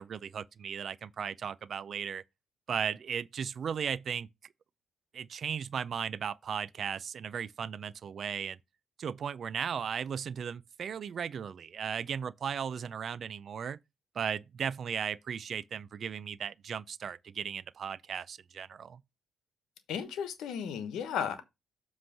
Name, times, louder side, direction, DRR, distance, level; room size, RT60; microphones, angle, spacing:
voice 1, 0.0-2.2 2.7-4.3 5.1-8.6 9.0-13.8 14.2-19.0, right 7 dB, 55° right, 0.4 m, -36 dB
voice 2, 19.9-21.4, left 8 dB, 85° left, 1.1 m, -34 dB
7.5 x 3.1 x 5.6 m
cardioid pair, 90°, 0 cm